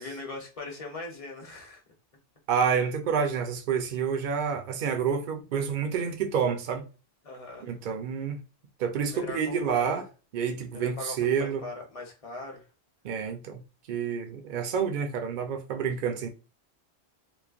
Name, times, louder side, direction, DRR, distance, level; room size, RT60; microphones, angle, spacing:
voice 1, 0.0-1.8 7.2-7.7 9.1-10.0 10.7-12.6, left 2 dB, 35° left, 0.8 m, -40 dB
voice 2, 2.5-6.8 7.6-8.4 8.8-10.0 10.3-11.6 13.0-13.6 13.9-16.3, right 7 dB, 60° right, 0.6 m, -28 dB
3.1 x 2.1 x 2.4 m
omnidirectional pair, 1.1 m